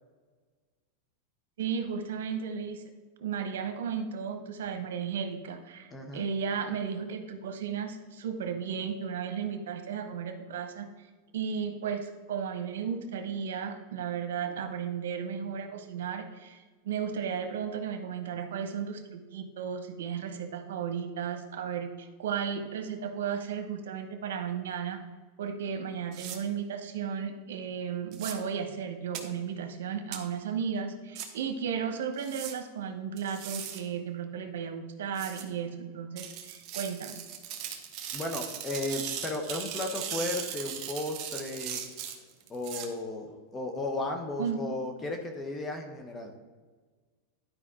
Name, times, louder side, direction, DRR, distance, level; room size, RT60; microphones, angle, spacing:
voice 1, 1.6-2.8 3.2-10.9 11.3-25.0 25.4-37.2 44.4-44.6, right 7 dB, 85° right, 6 dB, 1.0 m, -34 dB
voice 2, 5.9-6.3 38.1-41.8 42.5-46.3, left 2 dB, 20° left, 4 dB, 0.9 m, -35 dB
sound 1, 26.1-26.4 28.1-28.3 29.1-29.2 30.1-30.2 31.1-31.3 32.2-32.5 33.2-33.8 35.1-35.4 36.2-42.9, right 9 dB, 40° right, 1.1 m, -38 dB
11.0 x 5.1 x 3.7 m, 1.4 s
supercardioid pair, 145°, 0 cm